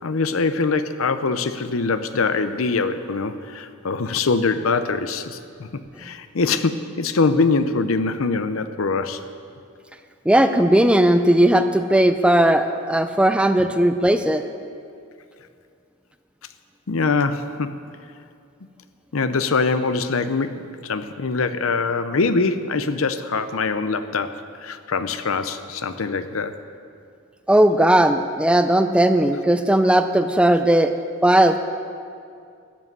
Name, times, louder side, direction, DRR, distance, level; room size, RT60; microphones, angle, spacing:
voice 1, 0.0-9.2 16.9-17.8 19.1-26.5, left 4 dB, 85° left, 11 dB, 0.7 m, -23 dB
voice 2, 10.3-14.4 27.5-30.9 31.2-31.6, right 1 dB, 5° right, 9 dB, 0.4 m, -17 dB
13.0 x 7.5 x 8.1 m, 2.4 s
head